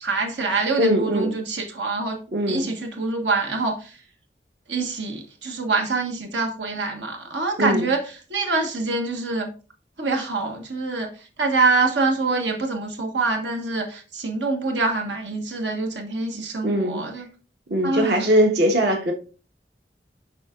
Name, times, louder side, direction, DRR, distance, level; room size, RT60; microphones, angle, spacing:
voice 1, 0.0-2.2 2.5-4.0 4.7-8.0 8.3-9.5 10.0-17.3 17.8-18.2, right 3 dB, 85° right, 1.3 m, -25 dB
voice 2, 0.8-1.3 2.3-2.7 7.6-7.9 16.6-17.0 17.7-19.1, equal, 65° right, 1.3 m, -21 dB
11.0 x 3.9 x 2.4 m
head